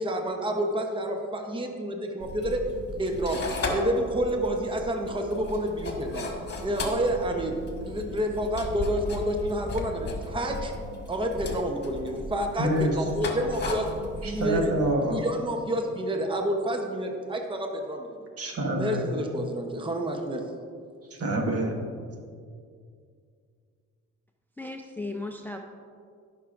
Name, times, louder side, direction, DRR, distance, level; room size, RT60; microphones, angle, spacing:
voice 1, 0.0-2.6 3.0-6.3 6.6-10.7 11.1-14.7 15.1-18.2 18.7-20.5, right 1 dB, 15° right, 3 dB, 0.9 m, -29 dB
sound 1, 2.2-14.9, left 2 dB, 35° left, 1.5 m, -36 dB
voice 2, 12.6-13.0 14.2-15.2 18.4-19.0 21.1-21.8, right 1 dB, 50° right, 1 dB, 1.5 m, -27 dB
voice 3, 24.6-25.6, left 2 dB, 5° left, 3 dB, 0.5 m, -35 dB
13.5 x 6.0 x 2.5 m, 2.2 s
cardioid pair, 90°, 30 cm